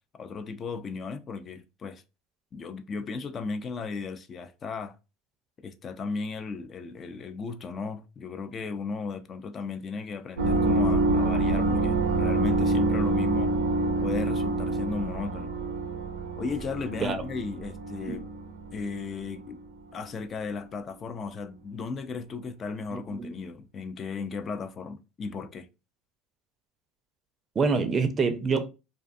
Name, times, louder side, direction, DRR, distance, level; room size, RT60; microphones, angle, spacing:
voice 1, 0.1-2.0 2.5-5.0 5.6-13.5 14.0-15.5 16.4-18.3 18.7-19.6 19.9-25.7, left 4 dB, 35° left, 0.4 m, -35 dB
sound 1, 10.4-19.5, right 2 dB, 85° right, 0.5 m, -27 dB
voice 2, 22.9-23.3 27.6-28.7, right 4 dB, 30° right, 0.5 m, -26 dB
2.5 x 2.3 x 2.5 m
supercardioid pair, 95°, 0 cm